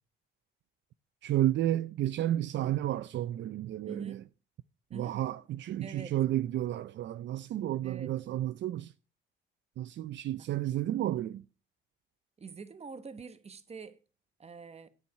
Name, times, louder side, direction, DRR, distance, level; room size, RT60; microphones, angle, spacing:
voice 1, 1.2-4.2 4.9-8.9 9.8-11.4, right 13 dB, 65° right, 0.5 m, -31 dB
voice 2, 3.9-4.3 4.9-5.2 5.8-6.2 7.8-8.1 10.4-10.5 12.4-14.0 14.4-14.9, right 5 dB, 30° right, 1.2 m, -45 dB
9.1 x 8.5 x 4.6 m
cardioid pair, 90°, 20 cm